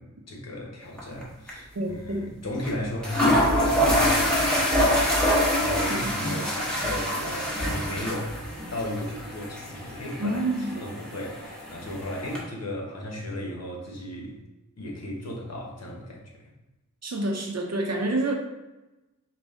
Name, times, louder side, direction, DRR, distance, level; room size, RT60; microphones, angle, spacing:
voice 1, 0.0-5.0 5.6-8.4 8.7-14.4 14.8-16.5, left 1 dB, 55° left, -1 dB, 1.2 m, -35 dB
sound 1, 1.0-1.2 1.5-1.6 2.6-2.7 3.0-12.4, equal, 5° left, 1.4 m, -25 dB
voice 2, 1.8-2.3 6.0-6.2 10.2-10.7 17.0-18.3, right 2 dB, 55° right, 2 dB, 0.8 m, -28 dB
5.1 x 2.4 x 3.7 m, 1.0 s
wide cardioid pair, 65°, 31 cm